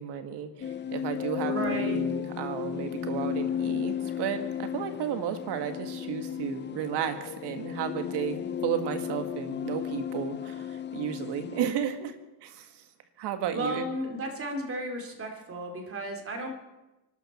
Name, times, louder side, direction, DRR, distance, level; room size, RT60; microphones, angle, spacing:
voice 1, 0.0-12.1 12.4-12.9 13.2-13.9, right 9 dB, 75° right, 8 dB, 1.9 m, -33 dB
sound 1, 0.6-11.7, left 9 dB, 25° left, 0.6 m, -34 dB
voice 2, 1.4-2.0 13.5-16.5, right 1 dB, 35° right, 3 dB, 2.9 m, -34 dB
24.5 x 12.5 x 4.4 m, 1.0 s
cardioid pair, 130°, 41 cm